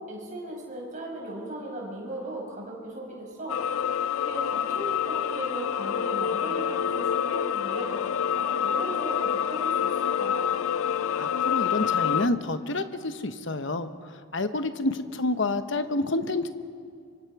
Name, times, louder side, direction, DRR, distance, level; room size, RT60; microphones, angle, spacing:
voice 1, 0.0-3.6 4.2-10.5, right 1 dB, 35° right, -2 dB, 5.3 m, -37 dB
sound 1, 3.5-12.3, left 8 dB, 80° left, 0.5 m, -27 dB
voice 2, 11.2-16.5, left 2 dB, 55° left, 9 dB, 1.0 m, -29 dB
25.5 x 24.5 x 4.8 m, 2.3 s
head